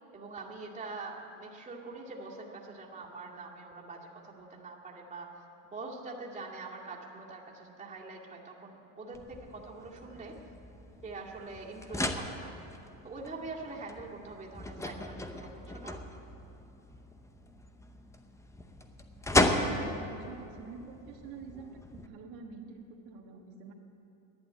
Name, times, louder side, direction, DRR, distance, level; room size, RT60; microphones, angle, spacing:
voice 1, 0.1-5.4 5.7-10.4 11.0-12.6 13.0-16.0, right 3 dB, 15° right, -3 dB, 2.2 m, -44 dB
sound 1, 9.1-22.1, left 1 dB, 5° left, 0.7 m, -36 dB
voice 2, 19.3-23.7, right 4 dB, 65° right, 1 dB, 1.5 m, -46 dB
11.5 x 9.0 x 9.5 m, 2.8 s
supercardioid pair, 105°, 42 cm